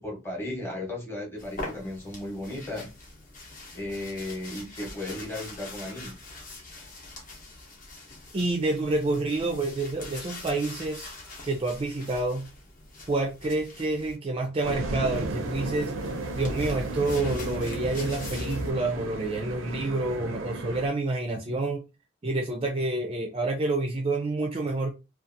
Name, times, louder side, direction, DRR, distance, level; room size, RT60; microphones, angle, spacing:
voice 1, 0.0-2.9 3.7-6.1, left 1 dB, 10° left, 0.9 m, -35 dB
sound 1, 1.4-14.2 15.1-18.7, left 2 dB, 45° left, 0.8 m, -42 dB
voice 2, 8.3-11.1 11.4-12.5 13.1-15.9 16.4-21.8 22.2-24.9, right 2 dB, 30° right, 0.4 m, -28 dB
sound 2, 14.6-20.9, right 2 dB, 85° right, 0.5 m, -33 dB
2.6 x 2.4 x 2.5 m
head